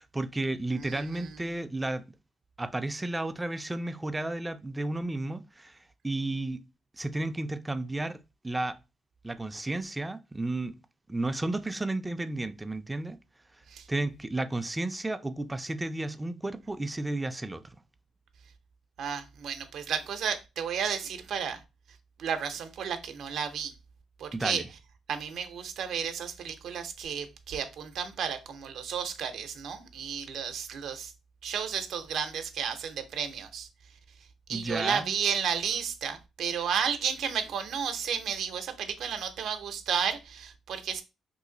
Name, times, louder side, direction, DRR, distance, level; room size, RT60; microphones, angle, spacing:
voice 1, 0.0-2.0 2.6-6.6 6.9-8.8 9.2-10.7 11.1-13.2 13.9-17.8 24.3-24.7 34.5-35.1, right 2 dB, 15° right, 0.3 m, -33 dB
voice 2, 19.0-21.6 22.2-23.7 24.2-24.6 25.1-31.1 31.4-33.7 34.5-41.0, right 7 dB, 70° right, 0.6 m, -32 dB
3.1 x 2.5 x 3.8 m
cardioid pair, 90°, 0 cm